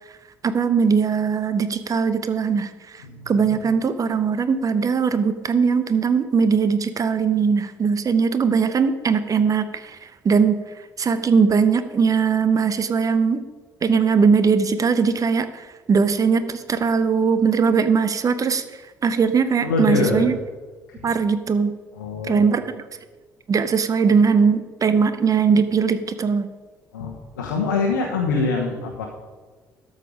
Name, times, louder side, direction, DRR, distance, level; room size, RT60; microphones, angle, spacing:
voice 1, 0.4-10.6 11.0-13.4 13.8-18.6 19.0-20.4 21.0-21.7 22.3-22.8 23.5-26.5, right 5 dB, 35° right, 12 dB, 0.8 m, -20 dB
voice 2, 3.0-3.6 19.6-20.3 21.0-21.1 21.9-22.6 26.9-29.0, left 4 dB, 75° left, 0 dB, 1.1 m, -25 dB
12.5 x 6.5 x 5.1 m, 1.3 s
figure-of-eight pair, 50°, 10 cm